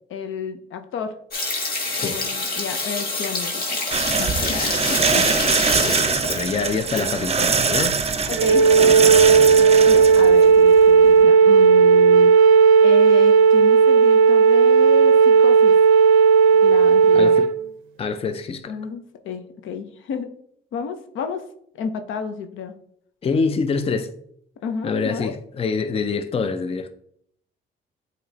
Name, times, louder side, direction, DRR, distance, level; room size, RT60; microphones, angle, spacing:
voice 1, 0.1-1.2 2.0-3.6 4.2-6.0 8.3-8.9 9.6-12.3 12.8-15.8 16.6-17.4 18.7-20.3 20.7-21.4 21.7-22.7 24.6-25.3, left 6 dB, 80° left, 0.8 m, -32 dB
sound 1, 1.3-7.0 7.3-7.4, left 2 dB, 50° left, 1.6 m, -26 dB
sound 2, 3.9-10.8, right 5 dB, 30° right, 0.6 m, -23 dB
voice 2, 4.4-4.8 5.7-8.0 17.1-17.5 18.0-18.7 23.2-24.1 24.8-26.9, left 5 dB, 30° left, 0.5 m, -26 dB
Wind instrument woodwind instrument, 8.3-17.5, right 5 dB, 90° right, 0.4 m, -13 dB
8.0 x 3.0 x 3.9 m
cardioid pair, 90°, 20 cm